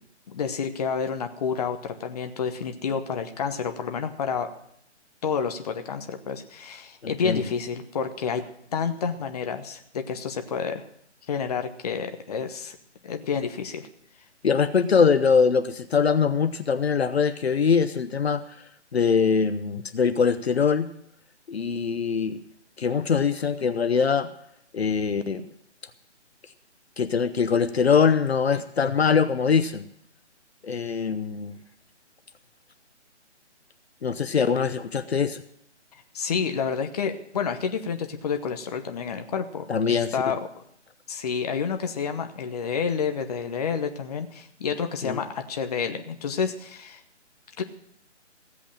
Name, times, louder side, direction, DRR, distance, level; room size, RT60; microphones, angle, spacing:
voice 1, 0.3-4.5 5.2-8.4 8.7-10.8 11.3-12.8 13.0-13.9 36.1-40.4 41.1-47.0 47.6-47.7, left 6 dB, 35° left, 6 dB, 1.0 m, -29 dB
voice 2, 7.0-7.4 14.4-18.4 18.9-20.9 21.5-22.4 22.8-24.3 24.7-25.5 27.0-29.8 30.6-31.6 34.0-35.4 39.7-40.1 45.0-45.2, left 6 dB, 60° left, 10 dB, 0.9 m, -23 dB
16.0 x 8.3 x 7.4 m, 0.71 s
figure-of-eight pair, 150°, 36 cm